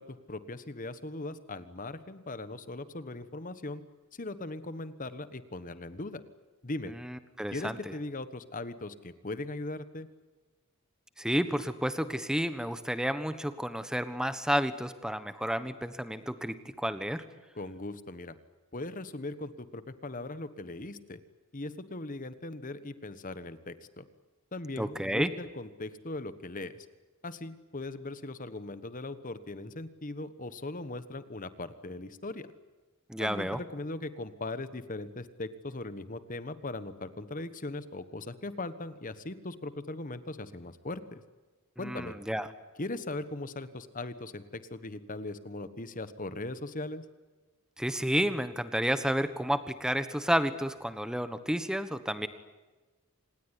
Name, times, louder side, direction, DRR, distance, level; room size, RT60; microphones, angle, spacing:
voice 1, 0.0-3.8 4.1-6.2 6.6-6.9 7.5-10.1 17.5-18.4 18.7-21.2 21.5-24.1 24.5-26.9 27.2-32.5 33.2-41.2 41.8-42.1 42.8-47.0, left 2 dB, 40° left, 13 dB, 1.3 m, -39 dB
voice 2, 7.0-7.8 11.2-17.2 24.8-25.3 33.1-33.6 41.8-42.5 47.8-52.3, equal, 5° right, 11 dB, 1.3 m, -31 dB
26.5 x 20.0 x 10.0 m, 1.3 s
head